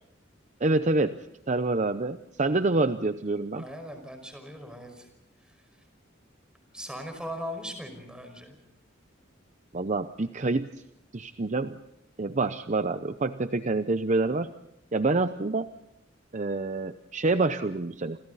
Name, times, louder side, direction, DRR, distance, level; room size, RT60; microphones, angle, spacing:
voice 1, 0.6-1.2 1.5-3.6 9.7-10.7 11.1-11.8 12.2-14.5 14.9-15.7 16.3-18.2, right 3 dB, 40° right, 10 dB, 0.7 m, -27 dB
voice 2, 3.5-5.1 5.5-5.6 6.7-8.6, equal, 5° right, 6 dB, 5.5 m, -39 dB
29.5 x 26.5 x 4.1 m, 0.81 s
head